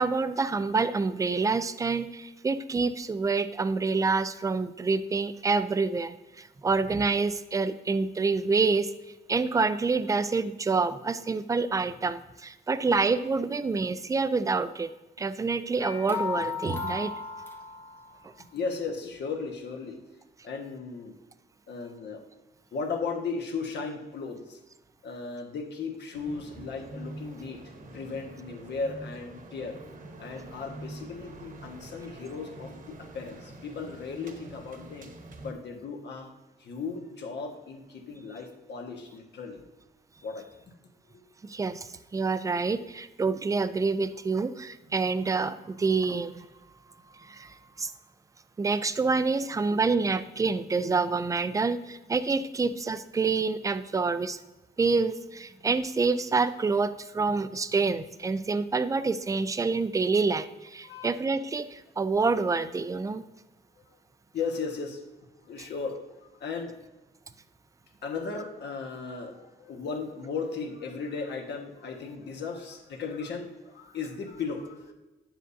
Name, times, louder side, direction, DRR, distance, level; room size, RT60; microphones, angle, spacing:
voice 1, 0.0-8.9 9.3-14.9 15.2-17.1 41.4-46.5 47.2-47.9 48.6-54.4 54.8-63.2, right 4 dB, 20° right, 12 dB, 0.4 m, -27 dB
sound 1, 15.8-18.3, left 5 dB, 10° left, 0.8 m, -35 dB
voice 2, 18.5-20.0 20.4-21.2 21.7-22.2 22.7-24.6 25.0-27.6 27.9-29.8 30.2-35.1 35.4-36.3 36.6-39.6 40.2-40.5 41.1-41.2 60.8-61.1 64.3-65.0 65.4-66.7 68.0-74.9, left 4 dB, 70° left, 2 dB, 1.3 m, -36 dB
sound 2, 26.1-35.5, right 2 dB, 50° right, 1.0 m, -45 dB
9.8 x 7.6 x 2.6 m, 1.1 s
wide cardioid pair, 135°, 18 cm